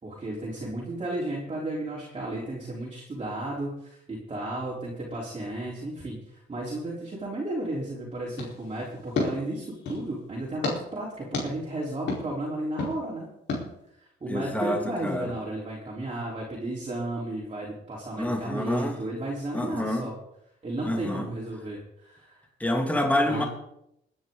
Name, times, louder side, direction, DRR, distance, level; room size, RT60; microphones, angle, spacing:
voice 1, 0.0-13.3 14.2-20.1 20.6-22.5 23.3-23.5, right 1 dB, 30° right, -5 dB, 4.1 m, -34 dB
sound 1, 8.3-10.1 10.6-10.8 11.3-11.5 12.1-12.2 12.8-12.9 13.5-13.6, left 3 dB, 65° left, 4.6 m, -31 dB
voice 2, 14.3-15.3 18.2-19.0 19.5-20.1 20.8-21.3 22.6-23.4, left 1 dB, 5° left, 3 dB, 2.7 m, -27 dB
20.5 x 9.9 x 4.0 m, 0.79 s
cardioid pair, 90°, 20 cm